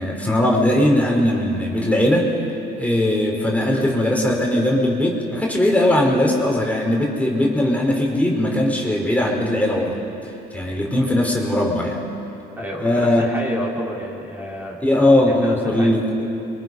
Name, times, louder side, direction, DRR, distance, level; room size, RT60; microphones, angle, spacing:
voice 1, 0.0-2.4 2.8-10.0 10.5-12.0 12.8-13.3 14.8-16.3, left 1 dB, 5° left, -1 dB, 4.3 m, -19 dB
voice 2, 12.6-14.8 15.4-15.9, equal, 10° right, -4 dB, 4.1 m, -30 dB
26.0 x 23.5 x 5.5 m, 2.9 s
supercardioid pair, 75°, 20 cm